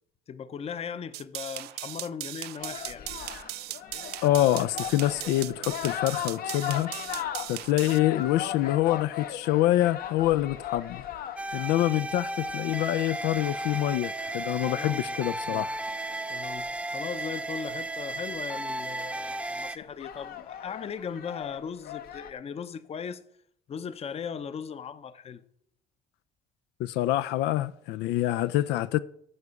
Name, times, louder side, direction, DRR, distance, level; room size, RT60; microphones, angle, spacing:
voice 1, 0.3-3.1 14.6-15.7 16.3-23.2 23.7-25.4, left 7 dB, 35° left, 0.7 m, -38 dB
sound 1, 1.1-8.0, right 15 dB, 75° right, 0.5 m, -38 dB
sound 2, 2.6-16.8 18.3-18.4 18.8-19.3 19.8-22.3, left 10 dB, 65° left, 0.9 m, -39 dB
voice 2, 4.2-6.9 7.5-11.0 11.5-15.8 26.8-29.0, left 14 dB, 85° left, 0.4 m, -26 dB
sound 3, 11.4-19.8, right 2 dB, 5° right, 0.5 m, -34 dB
9.6 x 4.8 x 6.8 m
cardioid pair, 110°, 17 cm